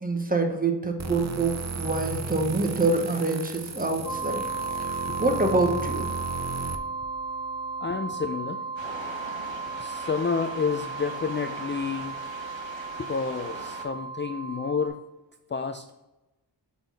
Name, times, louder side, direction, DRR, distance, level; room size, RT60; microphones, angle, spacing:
voice 1, 0.0-4.4 4.9-6.1, right 3 dB, 20° right, 3 dB, 1.0 m, -26 dB
sound 1, 1.0-6.8, right 4 dB, 40° right, 0.6 m, -35 dB
sound 2, 4.0-14.9, right 4 dB, ahead, 1.7 m, -35 dB
voice 2, 7.8-8.6 9.8-12.2 13.0-15.0 15.5-16.1, left 5 dB, 30° left, 7 dB, 0.3 m, -30 dB
sound 3, 8.8-13.9, right 3 dB, 80° right, 1.3 m, -41 dB
6.8 x 4.0 x 4.0 m, 1.0 s
wide cardioid pair, 70°, 45 cm